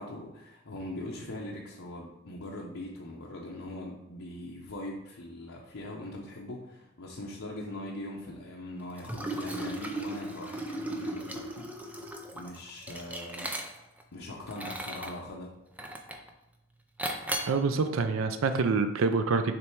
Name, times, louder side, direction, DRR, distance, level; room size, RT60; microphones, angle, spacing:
voice 1, 0.0-13.5 14.1-15.5, left 1 dB, 80° left, -3 dB, 0.8 m, -41 dB
Liquid, 9.0-14.0 14.5-15.2 15.8-16.3 17.0-17.6, right 1 dB, 5° right, 0.5 m, -36 dB
voice 2, 17.5-19.6, right 4 dB, 80° right, 8 dB, 0.4 m, -26 dB
6.8 x 3.2 x 4.6 m, 0.93 s
head